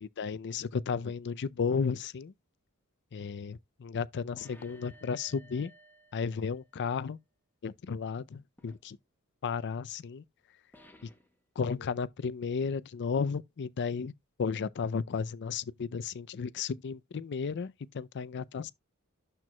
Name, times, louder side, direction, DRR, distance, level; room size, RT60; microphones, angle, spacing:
voice 1, 0.0-2.3 3.1-5.7 6.1-7.2 7.6-9.0 9.4-10.2 11.6-14.1 14.4-18.7, left 5 dB, 50° left, 0.4 m, -33 dB
sound 1, 4.4-6.9 8.6-8.8 10.7-11.3, equal, 10° left, 1.0 m, -58 dB
12.0 x 4.5 x 2.2 m
head